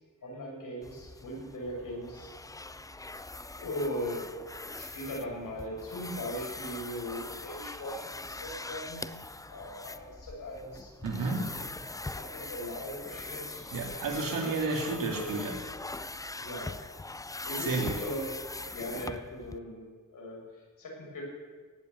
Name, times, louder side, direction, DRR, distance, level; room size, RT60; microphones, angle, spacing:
voice 1, 0.2-2.3 2.9-3.0 3.6-4.3 4.7-9.0 9.5-10.9 11.2-11.7 12.2-13.7 16.4-16.8 17.4-18.3 18.7-21.2, equal, 75° left, -2 dB, 6.1 m, -39 dB
sound 1, 0.8-19.6, left 2 dB, 10° left, 0.4 m, -42 dB
voice 2, 11.0-11.4 13.7-15.6 17.6-18.0, right 3 dB, 85° right, 1 dB, 3.1 m, -31 dB
18.0 x 8.2 x 8.1 m, 1.5 s
cardioid pair, 95°, 33 cm